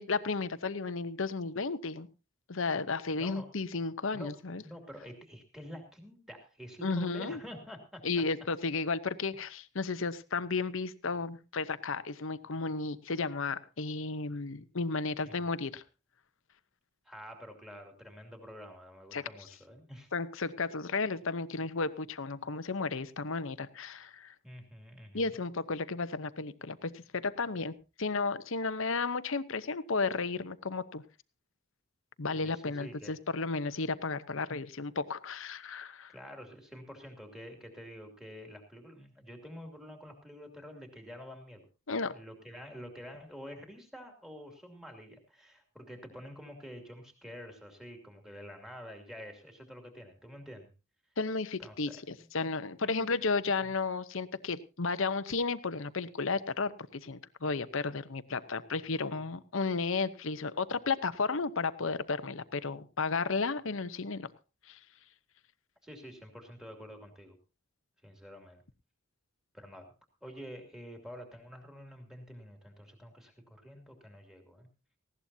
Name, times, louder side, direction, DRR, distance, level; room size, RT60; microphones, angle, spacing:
voice 1, 0.0-2.1 2.5-4.6 6.8-7.4 8.0-15.8 19.1-19.2 20.1-24.3 25.1-31.0 32.2-36.1 41.9-42.2 51.2-64.3 64.7-64.8, left 4 dB, 65° left, 13 dB, 0.8 m, -33 dB
voice 2, 3.2-3.5 4.1-8.0 15.2-15.5 17.0-20.1 24.4-25.3 32.3-33.1 36.1-41.7 42.1-50.7 51.6-52.3 52.8-53.3 53.6-53.7 65.8-67.4 68.0-68.6 69.5-69.9 70.2-74.7, equal, ahead, 4 dB, 2.6 m, -48 dB
19.0 x 16.0 x 2.8 m, 0.30 s
head